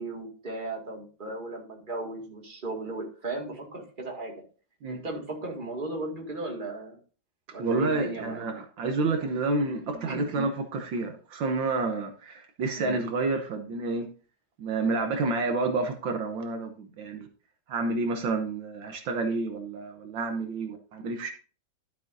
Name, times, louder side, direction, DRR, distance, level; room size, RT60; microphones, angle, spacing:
voice 1, 0.0-4.3 4.9-7.0 7.5-8.4 9.7-9.8 10.1-10.3 12.7-13.0, right 2 dB, 25° right, 0 dB, 2.3 m, -36 dB
voice 2, 7.6-14.1 14.6-17.3 17.7-21.3, right 3 dB, 75° right, 5 dB, 1.8 m, -29 dB
12.0 x 7.4 x 2.7 m, 0.37 s
omnidirectional pair, 2.1 m